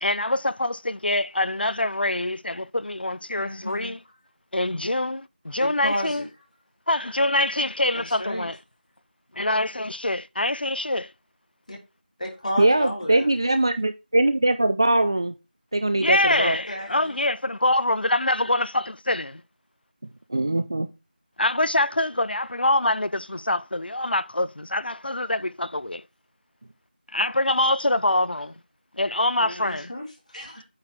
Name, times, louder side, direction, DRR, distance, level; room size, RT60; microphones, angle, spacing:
voice 1, 0.0-4.0 4.5-6.2 6.9-8.6 9.3-11.1 16.0-19.4 21.4-26.0 27.1-28.5 29.0-29.9, left 1 dB, 75° left, 0.5 m, -25 dB
voice 2, 3.4-3.9 5.5-6.3 7.9-8.5 11.7-11.8 12.2-13.3 16.7-17.2 29.4-30.6, left 1 dB, 50° left, 3.1 m, -33 dB
voice 3, 12.6-15.3 15.7-16.6 20.3-20.9, right 2 dB, 25° right, 0.4 m, -21 dB
8.6 x 4.1 x 4.5 m
figure-of-eight pair, 170°, 5 cm